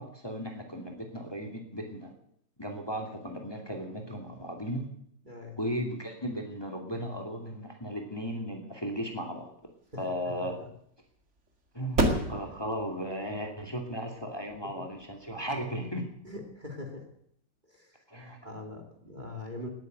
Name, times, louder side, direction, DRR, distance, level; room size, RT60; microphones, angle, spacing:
voice 1, 0.0-2.1 2.6-4.9 5.6-9.5 10.0-10.6 11.7-16.1 18.1-18.4, equal, 15° left, 2 dB, 2.6 m, -36 dB
voice 2, 5.3-5.6 9.9-10.5 16.2-17.1 17.7-18.0 18.4-19.7, left 2 dB, 25° right, 3 dB, 2.6 m, -42 dB
sound 1, 9.4-16.6, right 1 dB, 40° right, 2.3 m, -35 dB
19.5 x 9.1 x 8.0 m, 0.71 s
omnidirectional pair, 1.9 m